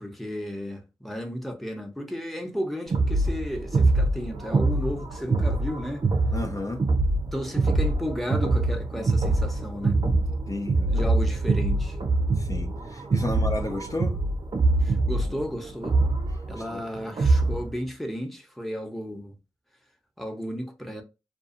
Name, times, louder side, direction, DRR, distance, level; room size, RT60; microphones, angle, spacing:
voice 1, 0.0-6.1 7.3-10.0 10.9-12.0 13.2-13.4 14.8-16.0 16.5-19.4 20.2-21.0, equal, ahead, 0.8 m, -33 dB
sound 1, 2.9-17.7, right 2 dB, 60° right, 0.6 m, -24 dB
voice 2, 6.3-6.9 10.5-11.1 12.4-14.2 16.6-16.8, left 2 dB, 40° left, 0.5 m, -33 dB
2.6 x 2.4 x 2.5 m
cardioid pair, 45°, 9 cm